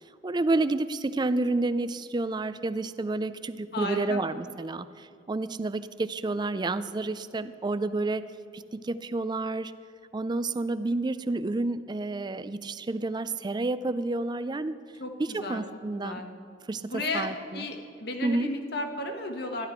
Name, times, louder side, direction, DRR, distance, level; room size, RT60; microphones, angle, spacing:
voice 1, 0.2-8.3 8.5-9.7 10.1-14.7 15.2-16.2 16.7-17.7 18.2-18.5, right 2 dB, 25° right, 13 dB, 0.4 m, -30 dB
voice 2, 3.7-4.2 15.0-15.6 15.9-16.3 16.9-19.7, left 1 dB, 60° left, 4 dB, 1.4 m, -34 dB
14.5 x 12.0 x 4.4 m, 2.4 s
head